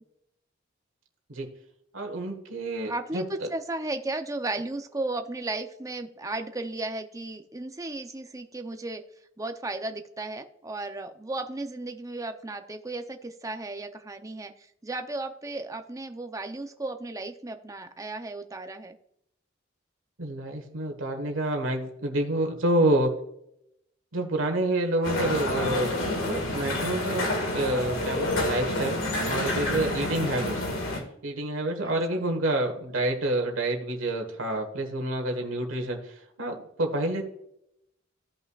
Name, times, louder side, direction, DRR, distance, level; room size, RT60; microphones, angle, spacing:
voice 1, 1.9-3.2 20.2-23.1 24.1-25.9 26.2-29.0 29.2-30.8 31.2-37.2, right 1 dB, 90° right, 3 dB, 1.5 m, -28 dB
voice 2, 2.9-9.0 9.4-19.0 30.3-30.6 31.8-32.2, right 2 dB, 15° right, 6 dB, 0.6 m, -35 dB
sound 1, 25.0-31.0, left 1 dB, 85° left, 2.0 m, -29 dB
14.5 x 5.6 x 2.4 m, 0.76 s
head